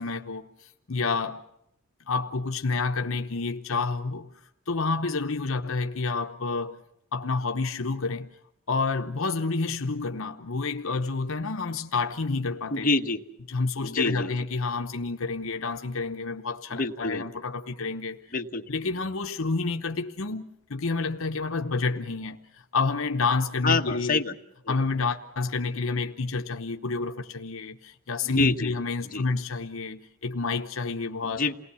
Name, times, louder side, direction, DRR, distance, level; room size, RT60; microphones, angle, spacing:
voice 1, 0.0-1.4 2.1-4.3 4.7-6.8 7.1-8.3 8.7-12.9 13.5-18.2 18.7-24.2 24.7-31.4, left 4 dB, 65° left, 0.9 m, -29 dB
voice 2, 12.7-13.2 13.8-14.3 16.7-17.3 18.3-18.7 23.6-24.3 24.7-24.8 28.3-28.8 29.0-29.3 31.2-31.5, left 3 dB, 40° left, 1.3 m, -27 dB
29.0 x 19.5 x 7.0 m
head